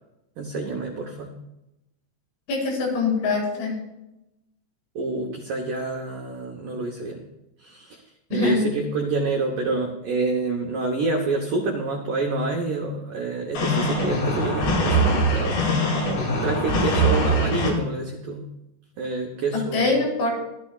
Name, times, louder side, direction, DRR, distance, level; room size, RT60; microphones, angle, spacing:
voice 1, 0.4-1.3 5.0-7.2 7.6-8.0 8.3-15.6 16.0-16.1 16.4-18.5 19.0-19.9, right 3 dB, 80° right, 1 dB, 1.9 m, -27 dB
voice 2, 2.5-3.8 8.3-8.6 19.5-20.3, left 3 dB, 85° left, -2 dB, 6.7 m, -23 dB
sound 1, 13.5-17.7, right 1 dB, 70° left, 4.7 m, -22 dB
17.0 x 12.5 x 2.4 m, 0.92 s
omnidirectional pair, 5.4 m